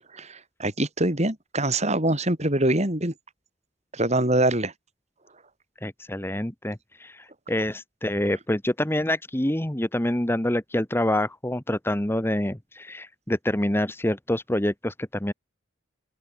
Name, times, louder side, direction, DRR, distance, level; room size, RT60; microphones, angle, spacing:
voice 1, 0.1-3.1 3.9-4.7, right 1 dB, 35° right, 4.9 m, -24 dB
voice 2, 5.8-15.3, left 1 dB, 10° left, 1.2 m, -26 dB
open air
head